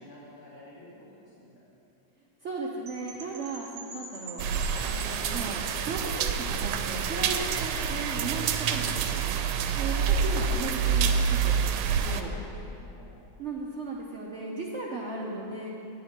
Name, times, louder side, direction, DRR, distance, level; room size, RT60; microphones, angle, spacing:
voice 1, 0.0-1.6 9.8-9.9 10.2-10.4 12.1-13.1, left 1 dB, 70° left, -11 dB, 2.6 m, -49 dB
voice 2, 2.4-4.4 4.8-9.4 9.7-12.3 13.4-15.7, right 3 dB, 65° right, -4 dB, 0.6 m, -36 dB
Percussion / Wind chime, 2.9-7.5, right 3 dB, 40° right, 1.4 m, -45 dB
sound 1, 4.4-12.2, right 6 dB, 90° right, 1.4 m, -27 dB
10.5 x 4.4 x 7.8 m, 2.9 s
omnidirectional pair, 2.3 m